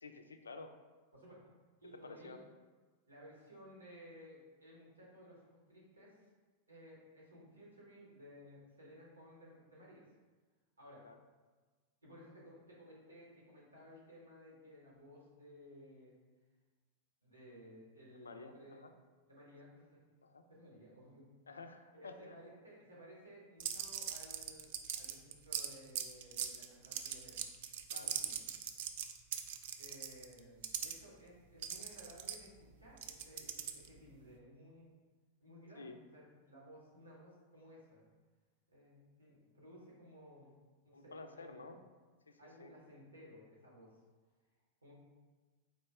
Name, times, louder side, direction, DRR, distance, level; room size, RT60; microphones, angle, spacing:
voice 1, 0.0-0.7 1.9-2.4 11.0-11.2 18.1-18.9 20.2-20.4 21.5-22.4 27.9-28.2 35.8-36.0 40.9-41.8 42.3-42.7, left 3 dB, 75° left, 7 dB, 0.3 m, -51 dB
voice 2, 1.8-2.4 3.1-6.2 6.7-10.1 10.8-11.1 12.0-16.2 17.2-18.9 19.2-20.0 20.5-21.5 21.9-27.4 27.9-28.4 29.8-34.9 35.4-35.8 36.1-38.0 38.7-41.8 42.4-44.0 44.8-44.9, equal, 80° right, -5 dB, 1.3 m, -57 dB
sound 1, 23.6-30.9 31.6-34.0, right 9 dB, 50° right, 0.3 m, -40 dB
4.1 x 3.0 x 3.3 m, 1.3 s
figure-of-eight pair, 90°, 0 cm